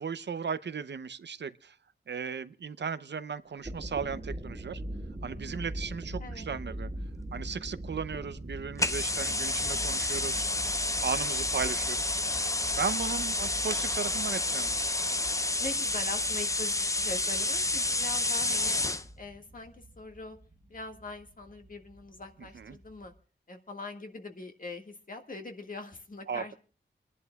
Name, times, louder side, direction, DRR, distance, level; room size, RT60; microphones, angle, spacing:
voice 1, 0.0-1.8 2.1-4.8 5.2-6.9 7.3-10.5 11.0-12.2 12.7-14.8 22.5-22.8 26.3-26.5, right 6 dB, 70° right, 0.6 m, -36 dB
sound 1, 3.5-23.1, right 1 dB, 30° right, 1.9 m, -43 dB
sound 2, 8.8-19.1, left 2 dB, 15° left, 0.5 m, -30 dB
voice 2, 12.3-13.6 15.6-18.8 19.2-20.4 20.7-23.1 23.5-26.5, left 2 dB, 50° left, 1.8 m, -43 dB
29.5 x 11.0 x 2.3 m
wide cardioid pair, 95°, 19 cm